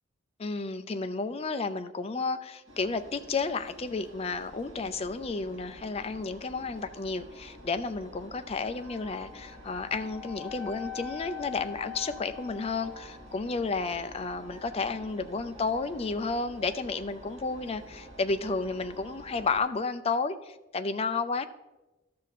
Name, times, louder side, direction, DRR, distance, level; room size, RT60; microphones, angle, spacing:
voice 1, 0.4-21.5, left 4 dB, 30° left, 0.4 m, -32 dB
Engine, 2.7-19.6, equal, 65° right, 2.7 m, -50 dB
sound 1, 8.6-19.6, left 9 dB, 30° right, 1.3 m, -46 dB
14.0 x 5.7 x 4.1 m
head